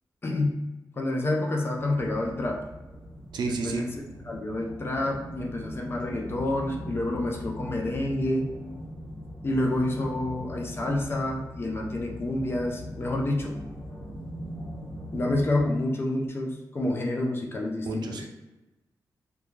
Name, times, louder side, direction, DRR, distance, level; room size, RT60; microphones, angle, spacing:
voice 1, 0.2-0.6 1.0-2.6 3.5-3.9 4.3-8.6 9.4-13.6 15.1-18.3, left 1 dB, 35° left, 0 dB, 0.5 m, -28 dB
sound 1, 1.8-15.6, left 1 dB, 85° left, 1.0 m, -40 dB
voice 2, 3.3-3.9 17.8-18.3, right 3 dB, 90° right, 2 dB, 0.4 m, -30 dB
2.3 x 2.2 x 3.0 m, 1.1 s
wide cardioid pair, 105°, 7 cm